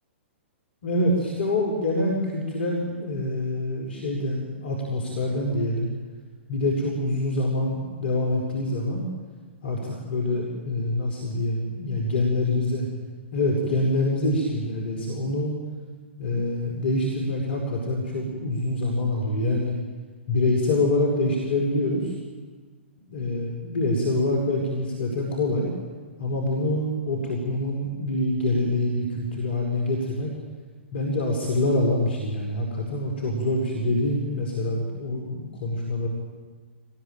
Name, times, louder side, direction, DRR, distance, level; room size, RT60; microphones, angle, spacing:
voice 1, 0.8-5.9 6.5-9.1 9.6-12.9 13.3-15.5 16.2-19.7 20.3-22.1 23.1-25.7 26.2-30.3 30.9-36.1, left 1 dB, 60° left, 0 dB, 5.1 m, -25 dB
24.5 x 19.5 x 9.1 m, 1.4 s
figure-of-eight pair, 110°, 7 cm